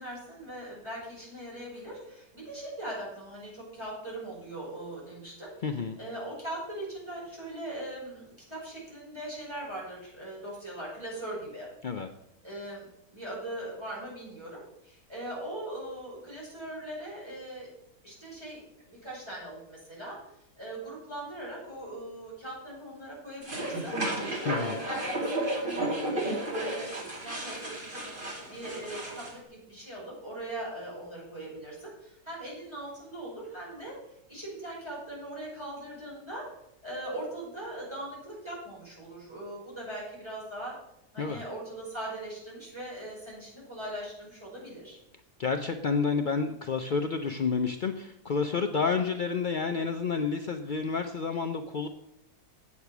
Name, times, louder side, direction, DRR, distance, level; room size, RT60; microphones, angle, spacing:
voice 1, 0.0-5.5 6.0-11.7 12.4-17.7 18.0-20.2 20.6-24.0 24.5-28.0 28.5-34.0 34.3-36.4 36.8-40.8 41.1-45.0, right 1 dB, 15° right, -6 dB, 5.1 m, -40 dB
voice 2, 5.6-6.0 11.8-12.1 24.4-24.8 41.2-41.4 45.4-51.9, left 5 dB, 90° left, 6 dB, 0.4 m, -29 dB
sound 1, 23.4-29.3, right 1 dB, 30° right, 2.5 m, -33 dB
8.4 x 8.2 x 5.9 m, 0.80 s
omnidirectional pair, 1.7 m